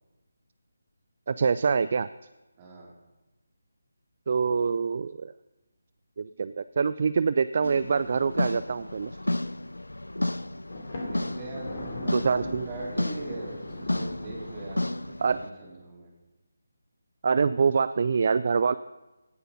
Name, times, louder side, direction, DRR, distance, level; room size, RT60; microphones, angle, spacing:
voice 1, 1.3-2.1 4.3-5.3 6.2-9.1 12.1-12.7 15.2-15.4 17.2-18.7, right 5 dB, 45° right, 15 dB, 0.3 m, -25 dB
voice 2, 2.6-2.9 11.1-16.1, right 2 dB, 25° right, -4 dB, 3.8 m, -41 dB
sound 1, 7.6-15.5, left 1 dB, 80° left, 0.5 m, -33 dB
Thunder, 10.7-15.3, left 1 dB, 45° left, 2.9 m, -40 dB
16.5 x 6.8 x 5.5 m, 1.1 s
figure-of-eight pair, 155°, 0 cm